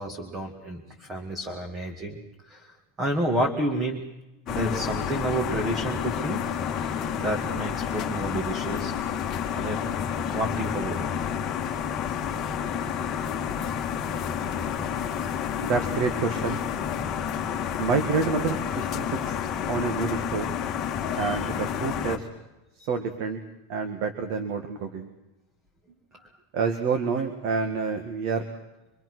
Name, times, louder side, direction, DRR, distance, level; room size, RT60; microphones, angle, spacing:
voice 1, 0.0-2.2 2.5-4.0 4.5-6.4 7.2-8.9 9.5-9.8 10.3-11.1 21.3-21.4 26.1-26.3, right 1 dB, 15° right, 1 dB, 2.2 m, -30 dB
sound 1, 4.5-22.2, left 8 dB, 20° left, 2.0 m, -30 dB
voice 2, 15.6-16.6 17.8-19.3 19.7-20.5 21.2-22.3 22.9-23.4 23.7-25.1 26.5-28.5, right 5 dB, 45° right, 7 dB, 1.9 m, -28 dB
25.5 x 24.0 x 6.3 m, 0.99 s
supercardioid pair, 175°, 0 cm